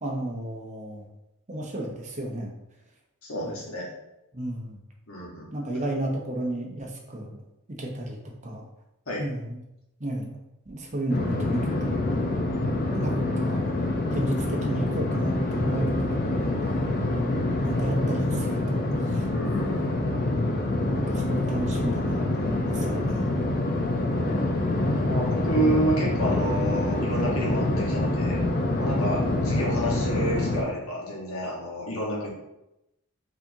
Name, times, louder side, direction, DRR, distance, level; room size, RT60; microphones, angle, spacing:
voice 1, 0.0-1.0 1.5-2.5 3.4-3.6 4.3-4.8 5.5-7.4 7.8-8.2 8.4-8.7 9.2-9.6 10.0-10.3 10.7-12.0 12.9-13.6 14.1-16.8 17.6-19.3 20.2-20.6 20.9-23.3, right 1 dB, 30° right, 0 dB, 0.7 m, -33 dB
voice 2, 3.2-3.9 5.1-5.5 9.1-9.3 19.3-19.9 25.1-28.4 28.8-32.3, right 1 dB, 65° left, -3 dB, 1.2 m, -29 dB
sound 1, 11.1-30.6, left 2 dB, 40° left, 0.5 m, -26 dB
4.8 x 2.8 x 2.7 m, 0.89 s
head